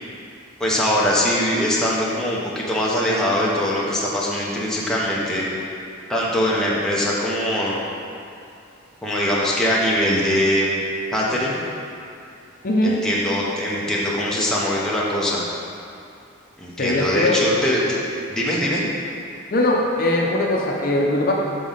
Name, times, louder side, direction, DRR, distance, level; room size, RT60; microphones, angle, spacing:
voice 1, 0.6-5.5 6.1-7.8 9.0-10.8 11.1-11.6 12.8-15.4 16.6-18.0 18.3-18.8, equal, 5° left, -6 dB, 0.9 m, -22 dB
voice 2, 12.6-13.0 16.8-17.4 19.5-21.3, left 1 dB, 45° left, -2 dB, 0.7 m, -20 dB
7.0 x 3.8 x 5.6 m, 2.6 s
head